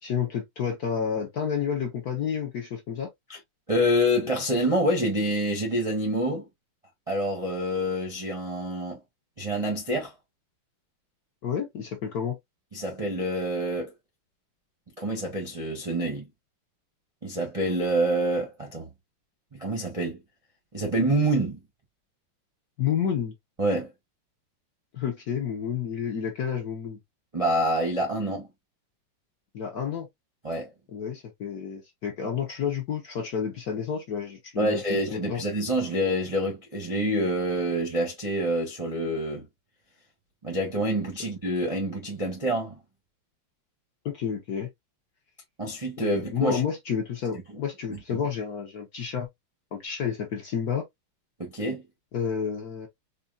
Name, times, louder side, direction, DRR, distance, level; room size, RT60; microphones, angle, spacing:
voice 1, 0.0-3.1 11.4-12.4 22.8-23.3 24.9-27.0 29.5-30.1 30.9-35.4 44.0-44.7 46.0-49.3 49.7-50.8 52.1-52.9, left 7 dB, 55° left, 1.1 m, -30 dB
voice 2, 3.7-6.5 7.1-9.0 9.4-10.1 12.7-13.9 15.0-16.3 17.2-18.9 19.5-20.2 20.7-21.6 23.6-23.9 27.3-28.5 30.4-30.7 34.6-39.5 40.4-42.8 45.6-46.6 47.9-48.3 51.4-51.9, right 1 dB, 30° right, 0.6 m, -27 dB
4.4 x 2.7 x 2.4 m
omnidirectional pair, 2.4 m